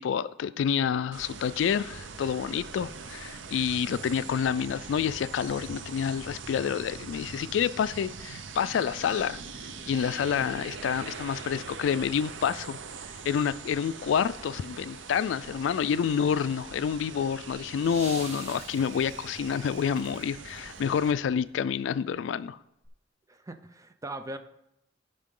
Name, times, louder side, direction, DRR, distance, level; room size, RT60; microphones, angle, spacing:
voice 1, 0.0-9.4 9.9-12.8 13.2-22.6, left 7 dB, 70° left, 0.3 m, -28 dB
sound 1, 1.1-21.1, right 5 dB, 70° right, 0.7 m, -42 dB
sound 2, 17.7-21.7 22.8-22.9, right 2 dB, 35° right, 1.7 m, -46 dB
voice 2, 23.3-24.4, right 2 dB, 15° right, 0.5 m, -40 dB
14.0 x 5.4 x 3.7 m
head